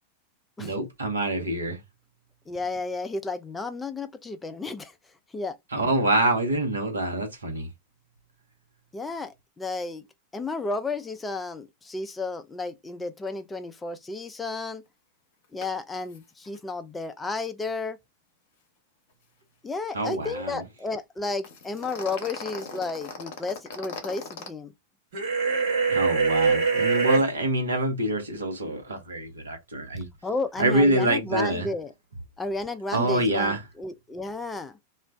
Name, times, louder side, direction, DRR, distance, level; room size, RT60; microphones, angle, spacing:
voice 1, 0.6-1.8 5.7-7.7 19.9-20.6 25.9-30.1 30.6-31.7 32.9-33.6, right 1 dB, 75° right, 0.9 m, -25 dB
voice 2, 2.5-4.9 5.3-5.6 8.9-10.0 10.3-14.8 15.5-18.0 19.6-24.7 30.2-31.9 32.4-34.8, left 3 dB, 10° left, 0.4 m, -32 dB
sound 1, 15.6-15.7 16.0-16.2 16.4-16.6 21.4-24.5, left 4 dB, 50° left, 0.8 m, -38 dB
sound 2, 25.1-27.2, right 5 dB, 50° right, 0.9 m, -23 dB
2.4 x 2.1 x 3.5 m
figure-of-eight pair, 90°, 0 cm